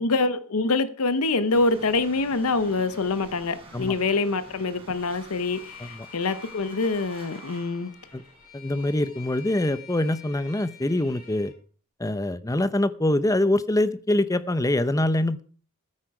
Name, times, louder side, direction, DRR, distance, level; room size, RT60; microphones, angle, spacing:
voice 1, 0.0-7.9, left 3 dB, 85° left, 0.8 m, -25 dB
sound 1, 1.5-8.5, right 2 dB, 25° right, 4.0 m, -47 dB
Bowed string instrument, 5.3-11.6, left 9 dB, 40° left, 4.1 m, -48 dB
voice 2, 8.5-11.5 12.0-15.4, left 1 dB, 15° left, 0.7 m, -24 dB
13.0 x 9.5 x 4.8 m
head